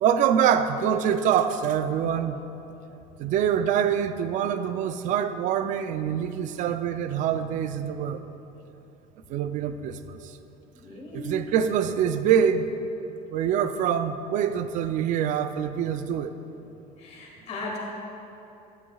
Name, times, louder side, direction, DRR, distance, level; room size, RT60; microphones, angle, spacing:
voice 1, 0.0-2.4 3.2-8.2 9.3-10.2 11.1-12.7 13.3-16.3, right 8 dB, 50° right, 10 dB, 0.5 m, -25 dB
voice 2, 10.8-11.5 17.0-17.8, left 2 dB, 40° left, -3 dB, 1.8 m, -37 dB
13.5 x 9.9 x 2.4 m, 2.9 s
cardioid pair, 160°, 16 cm